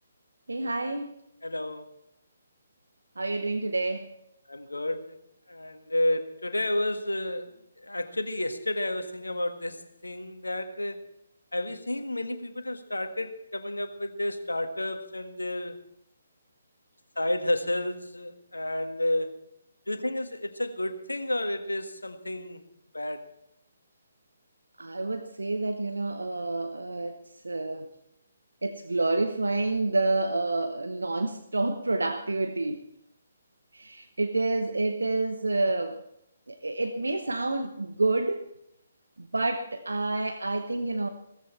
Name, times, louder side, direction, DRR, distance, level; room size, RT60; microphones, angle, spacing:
voice 1, 0.5-1.1 3.2-4.1 24.8-27.2 27.4-27.9 28.6-32.8 33.7-36.0 36.5-38.4 39.2-41.1, right 2 dB, 70° right, 1.0 m, -28 dB
voice 2, 1.4-1.9 4.5-5.2 5.5-7.5 7.8-11.1 11.5-15.8 17.1-19.4 19.9-22.6 22.9-23.3, left 1 dB, 75° left, 1.6 m, -31 dB
17.0 x 14.5 x 4.4 m
figure-of-eight pair, 135°, 0 cm